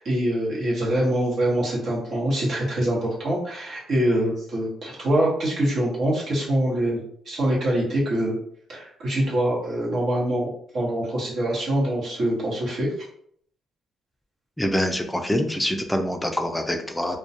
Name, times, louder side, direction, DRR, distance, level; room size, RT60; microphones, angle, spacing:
voice 1, 0.0-8.4 8.7-12.9, right 1 dB, 60° right, -4 dB, 1.0 m, -24 dB
voice 2, 14.6-17.2, equal, 5° left, 5 dB, 0.4 m, -25 dB
2.3 x 2.1 x 2.7 m, 0.64 s
cardioid pair, 90°, 0 cm